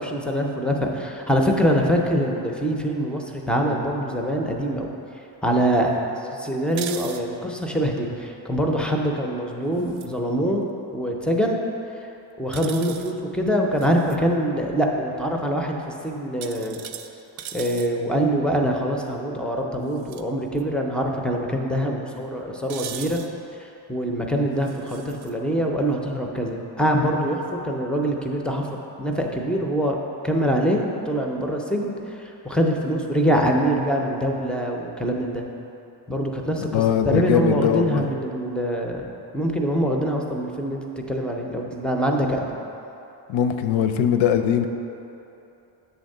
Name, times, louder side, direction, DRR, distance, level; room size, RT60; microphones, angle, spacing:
voice 1, 0.0-4.9 5.4-10.6 10.9-11.6 11.9-12.1 12.4-16.8 17.5-23.2 23.6-28.7 29.0-30.0 30.2-35.4 36.1-39.1 39.3-42.6, equal, ahead, 0 dB, 0.3 m, -24 dB
sound 1, 6.7-7.2 9.8-10.1 12.5-13.1 13.8-14.2 16.4-17.9 19.9-20.2 20.6-20.7 22.7-23.3 24.6-25.3, right 9 dB, 80° right, 0.6 m, -38 dB
voice 2, 36.7-38.1 43.3-44.7, left 8 dB, 80° left, 8 dB, 0.6 m, -21 dB
8.3 x 3.5 x 6.4 m, 3.0 s
wide cardioid pair, 170°, 46 cm